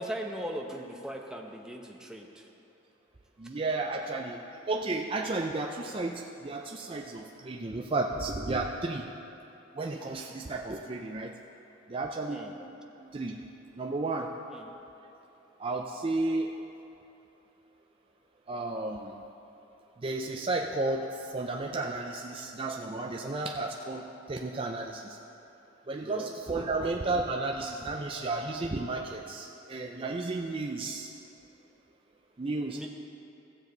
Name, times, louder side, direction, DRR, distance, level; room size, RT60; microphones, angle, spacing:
voice 1, 0.0-2.5 12.3-12.5 14.5-14.7 26.0-26.3 32.7-32.9, equal, 5° right, 0 dB, 0.7 m, -39 dB
voice 2, 3.4-4.4 4.7-6.1 6.4-9.1 9.8-11.3 11.9-12.7 13.0-13.4 13.8-14.3 15.6-16.5 18.5-19.1 20.0-24.0 24.3-25.0 25.9-31.1 32.4-32.9, right 2 dB, 25° right, 1 dB, 0.4 m, -33 dB
16.0 x 7.1 x 3.9 m, 3.0 s
head